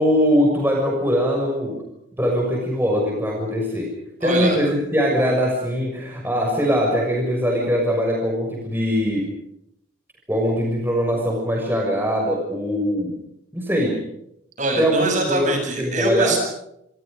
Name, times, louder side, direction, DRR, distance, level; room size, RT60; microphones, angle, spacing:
voice 1, 0.0-1.8 2.2-3.9 4.2-9.3 10.3-13.1 13.5-14.0 14.8-15.5 15.8-16.4, equal, 10° right, 0 dB, 6.4 m, -21 dB
voice 2, 4.2-4.6 14.6-16.4, right 1 dB, 40° right, 3 dB, 7.9 m, -23 dB
28.0 x 26.0 x 5.2 m, 0.78 s
head